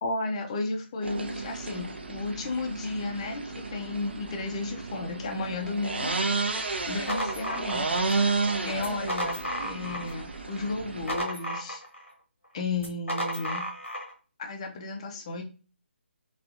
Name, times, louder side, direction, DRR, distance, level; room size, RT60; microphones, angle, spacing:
voice 1, 0.0-3.4 3.7-6.1 6.9-8.1 8.4-11.8 12.5-13.7 14.4-15.4, left 3 dB, 30° left, 3 dB, 0.5 m, -33 dB
sound 1, 1.0-11.2, right 3 dB, 60° right, 0.6 m, -32 dB
sound 2, 6.8-8.2 8.8-10.2 10.6-12.1 12.8-14.1, equal, 90° left, 1.0 m, -33 dB
3.4 x 2.4 x 2.5 m, 0.36 s
figure-of-eight pair, 145°, 6 cm